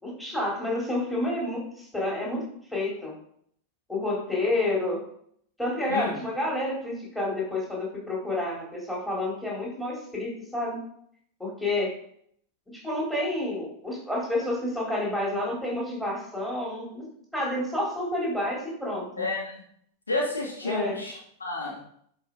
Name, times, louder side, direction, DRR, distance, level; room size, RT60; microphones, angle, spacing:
voice 1, 0.0-2.4 2.7-3.2 3.9-5.0 5.6-10.8 11.4-11.9 12.7-17.0 17.3-19.2 20.6-21.0, left 1 dB, 5° left, -4 dB, 4.5 m, -29 dB
voice 2, 19.2-19.6 20.1-21.1 21.4-21.8, left 2 dB, 75° left, -2 dB, 2.4 m, -30 dB
11.0 x 5.4 x 5.0 m, 0.67 s
figure-of-eight pair, 90°, 0 cm